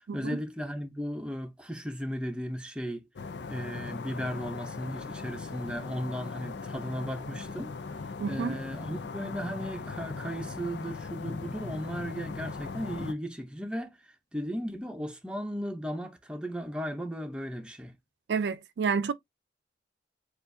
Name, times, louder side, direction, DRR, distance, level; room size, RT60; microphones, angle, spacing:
voice 1, 0.0-3.0 3.5-17.9, equal, 5° right, 0.6 m, -36 dB
sound 1, 3.2-13.1, left 4 dB, 90° left, 0.6 m, -39 dB
voice 2, 8.2-8.6 18.3-19.1, right 5 dB, 80° right, 0.4 m, -29 dB
6.7 x 2.5 x 2.6 m
head